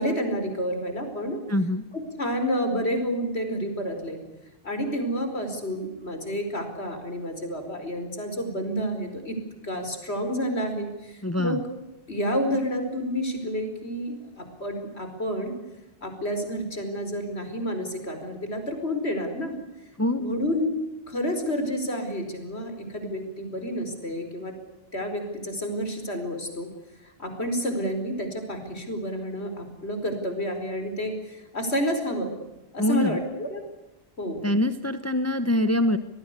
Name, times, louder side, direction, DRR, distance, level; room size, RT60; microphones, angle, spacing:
voice 1, 0.0-1.4 1.9-4.2 4.6-9.4 9.6-11.6 12.1-15.5 16.0-19.6 20.2-20.7 21.1-24.5 24.9-26.7 27.0-32.3 32.7-33.6 34.2-34.4, equal, 90° left, 6 dB, 5.1 m, -29 dB
voice 2, 1.5-1.8 11.2-11.6 20.0-20.4 32.8-33.2 34.4-36.0, left 1 dB, 15° left, 11 dB, 1.1 m, -24 dB
26.5 x 19.0 x 8.3 m, 1.0 s
omnidirectional pair, 1.1 m